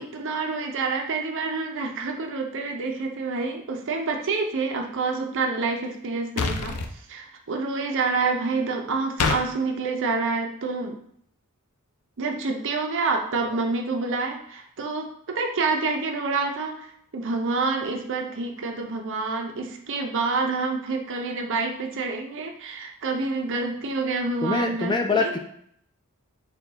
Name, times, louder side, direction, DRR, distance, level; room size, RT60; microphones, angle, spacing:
voice 1, 0.0-6.8 7.1-10.9 12.2-16.9 17.1-25.3, right 4 dB, 60° right, 3 dB, 0.6 m, -27 dB
sound 1, 6.4-6.9 9.2-9.4, left 4 dB, 80° left, 0.5 m, -25 dB
voice 2, 24.4-25.4, left 4 dB, 20° left, 5 dB, 0.3 m, -24 dB
4.3 x 2.3 x 3.9 m, 0.67 s
head